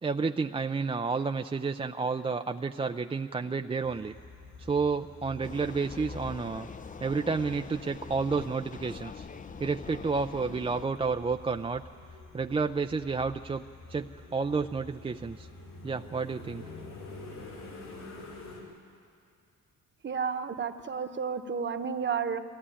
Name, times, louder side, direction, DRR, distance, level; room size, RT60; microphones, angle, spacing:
voice 1, 0.0-4.1 4.6-6.7 7.0-9.3 9.6-11.8 12.3-13.6 13.9-15.5 15.8-16.6, right 4 dB, 20° right, 6 dB, 0.5 m, -30 dB
sound 1, 3.8-18.6, left 3 dB, 80° left, 5.9 m, -48 dB
Vehicle, 5.4-10.9, left 6 dB, 25° left, 0.6 m, -44 dB
voice 2, 20.0-22.4, right 6 dB, 40° right, 8 dB, 1.1 m, -31 dB
21.5 x 15.0 x 10.0 m, 2.3 s
cardioid pair, 90°, 30 cm